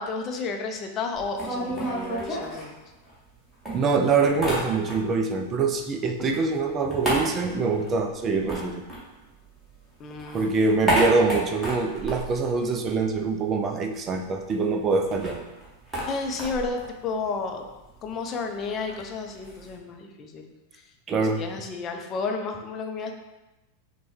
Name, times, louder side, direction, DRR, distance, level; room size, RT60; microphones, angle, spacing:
voice 1, 0.0-2.8 10.0-10.5 16.0-17.6 18.0-20.5 21.1-23.1, left 4 dB, 30° left, 3 dB, 0.5 m, -32 dB
sound 1, 1.1-3.3 3.6-5.3 5.5-9.7 10.0-13.3 13.6-13.7 13.9-19.7, right 1 dB, 10° right, 1.4 m, -32 dB
voice 2, 3.7-8.8 10.3-15.4 21.1-21.4, right 4 dB, 25° right, 4 dB, 0.3 m, -24 dB
6.0 x 2.2 x 3.0 m, 1.0 s
figure-of-eight pair, 90°, 0 cm